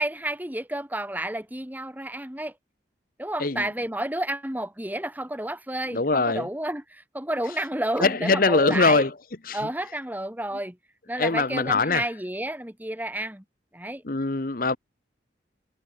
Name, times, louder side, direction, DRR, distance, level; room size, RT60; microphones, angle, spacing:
voice 1, 0.0-2.5 3.2-9.0 9.5-10.7 11.1-13.4 13.7-14.0, right 1 dB, 10° right, 1.6 m, -31 dB
voice 2, 5.9-6.4 8.0-9.1 9.5-9.6 11.2-12.0 14.0-14.8, left 3 dB, 50° left, 1.0 m, -22 dB
head